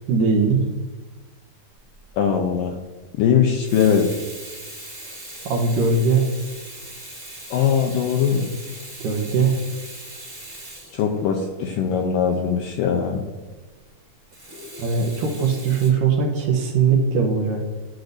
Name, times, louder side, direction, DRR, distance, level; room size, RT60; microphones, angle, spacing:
voice 1, 0.1-0.6 5.5-6.3 9.0-9.6 14.8-17.7, right 5 dB, 70° right, 0 dB, 2.2 m, -20 dB
Water tap faucet / Sink (filling or washing), 1.9-2.1 3.4-11.6 14.3-15.9, right 1 dB, 15° right, 1.0 m, -40 dB
voice 2, 2.2-2.8 3.2-4.1 7.5-8.5 10.9-13.2, left 7 dB, 85° left, 2 dB, 2.0 m, -20 dB
12.0 x 6.5 x 2.6 m, 1.3 s
omnidirectional pair, 4.6 m